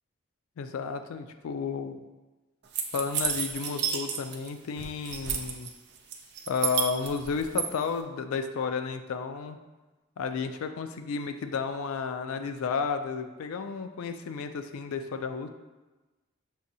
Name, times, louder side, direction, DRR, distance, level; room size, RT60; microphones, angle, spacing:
voice 1, 0.6-2.0 2.9-5.7 6.5-9.6 10.2-15.5, left 5 dB, 85° left, 8 dB, 0.3 m, -32 dB
Key noises, 2.7-4.5 4.8-5.7 6.1-7.7, right 8 dB, 50° right, 0.4 m, -30 dB
6.3 x 2.6 x 2.7 m, 1.2 s
head